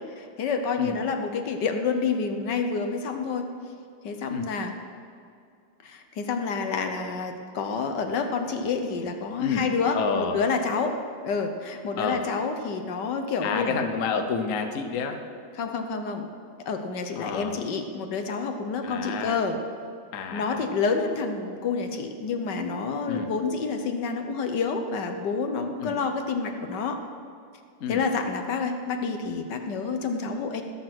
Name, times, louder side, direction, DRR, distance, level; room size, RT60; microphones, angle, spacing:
voice 1, 0.2-3.4 4.0-4.7 5.8-11.0 11.2-13.8 15.6-16.3 16.7-19.6 20.3-27.0 27.9-30.6, left 5 dB, 70° left, 6 dB, 1.6 m, -28 dB
voice 2, 9.9-10.4 12.0-12.2 13.4-15.2 17.2-17.6 18.8-19.4 20.1-20.6 23.1-23.3 25.8-26.0 27.8-28.0, left 5 dB, 50° left, 5 dB, 1.2 m, -29 dB
20.0 x 7.0 x 6.0 m, 2.4 s
omnidirectional pair, 2.0 m